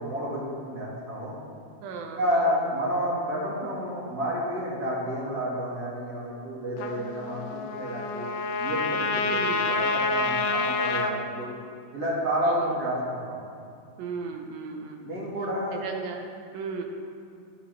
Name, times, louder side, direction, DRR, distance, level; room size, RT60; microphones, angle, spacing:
voice 1, 0.0-1.3 2.2-8.3 8.6-9.4 9.7-11.5 11.9-13.4 15.0-15.7, equal, 35° right, -5 dB, 1.8 m, -30 dB
voice 2, 1.8-2.6 9.2-9.7 12.4-12.8 14.0-15.0 15.7-16.3 16.5-16.8, right 5 dB, 90° right, 3 dB, 2.8 m, -36 dB
Trumpet, 6.8-11.1, left 3 dB, 80° left, 2.3 m, -28 dB
12.5 x 10.0 x 3.4 m, 2.3 s
omnidirectional pair, 3.9 m